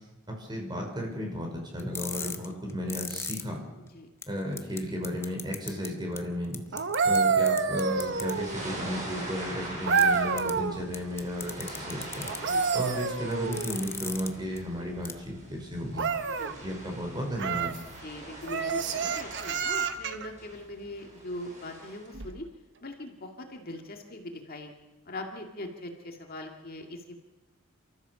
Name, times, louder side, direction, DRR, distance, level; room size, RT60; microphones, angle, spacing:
voice 1, 0.3-3.6 4.3-12.3 12.7-16.1 16.6-17.7, equal, 20° right, 1 dB, 5.2 m, -34 dB
sound 1, 1.8-3.4 3.9-4.0 4.2-4.3 4.6-4.8 5.0-5.9 6.2-6.3 6.5-7.2 7.5-8.3 10.0-10.1 10.4-10.5 10.9-12.4 13.3-14.3 14.6-14.7 15.0-15.1, left 4 dB, 10° left, 1.0 m, -36 dB
sound 2, 6.7-8.7 9.9-10.8 12.2-13.8 15.9-16.5 17.4-17.8 18.5-20.3 22.1-22.3, right 5 dB, 55° right, 1.1 m, -28 dB
sound 3, 7.8-22.1, right 1 dB, 35° right, 6.3 m, -43 dB
voice 2, 18.0-22.5 22.8-24.7 25.1-27.2, left 1 dB, 45° left, 3 dB, 2.1 m, -41 dB
28.5 x 14.0 x 7.0 m, 1.1 s
head